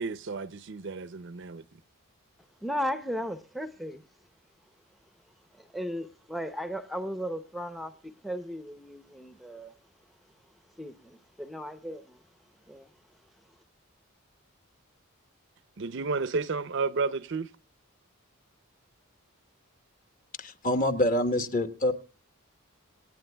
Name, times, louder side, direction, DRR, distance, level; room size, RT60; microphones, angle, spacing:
voice 1, 0.0-1.6 15.8-17.5, right 4 dB, 55° right, 0.5 m, -31 dB
voice 2, 2.6-4.0 5.5-9.7 10.8-12.2 12.7-12.9, equal, ahead, 0.6 m, -36 dB
voice 3, 20.4-21.9, left 1 dB, 35° left, 1.2 m, -26 dB
26.0 x 9.2 x 2.2 m
head